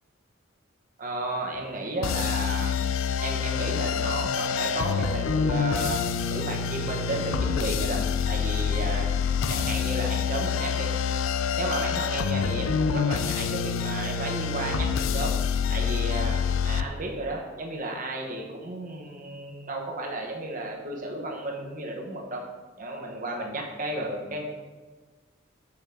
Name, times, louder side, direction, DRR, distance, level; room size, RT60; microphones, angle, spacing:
voice 1, 1.0-2.8 3.2-9.1 9.5-10.9 11.5-15.3 15.7-22.4 22.8-24.4, right 1 dB, 45° right, 0 dB, 1.0 m, -33 dB
sound 1, 2.0-16.8, left 6 dB, 85° left, 0.3 m, -27 dB
7.0 x 6.9 x 2.6 m, 1.3 s
head